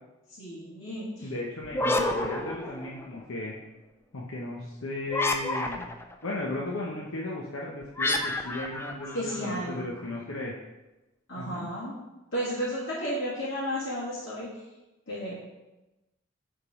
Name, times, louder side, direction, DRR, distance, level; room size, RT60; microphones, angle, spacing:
voice 1, 0.4-1.3 9.1-9.8 11.3-11.9 12.3-14.5 15.1-15.3, equal, 70° left, -10 dB, 1.9 m, -33 dB
voice 2, 1.2-3.6 4.1-5.9 6.2-10.5 11.3-11.7, left 2 dB, 90° left, -3 dB, 0.9 m, -35 dB
sound 1, 1.6-3.2 5.1-6.1 8.0-9.8, left 1 dB, 10° left, 0.4 m, -30 dB
6.9 x 3.7 x 4.8 m, 1.0 s
head